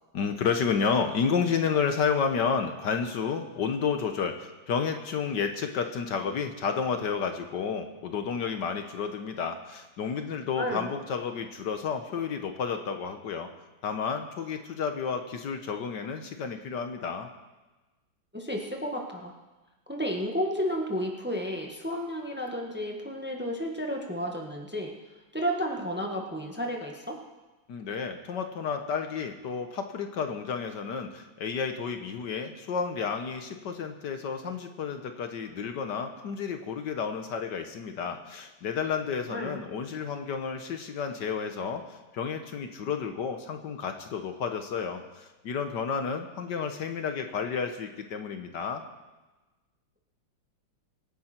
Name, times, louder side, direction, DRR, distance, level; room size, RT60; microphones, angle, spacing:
voice 1, 0.1-13.5 13.8-17.3 27.7-48.8, left 6 dB, 65° left, 6 dB, 1.6 m, -31 dB
voice 2, 10.5-10.9 18.3-19.3 19.9-24.9 25.3-27.2 39.3-39.6, equal, 5° right, 1 dB, 1.4 m, -32 dB
24.5 x 9.9 x 4.4 m, 1.2 s
omnidirectional pair, 2.1 m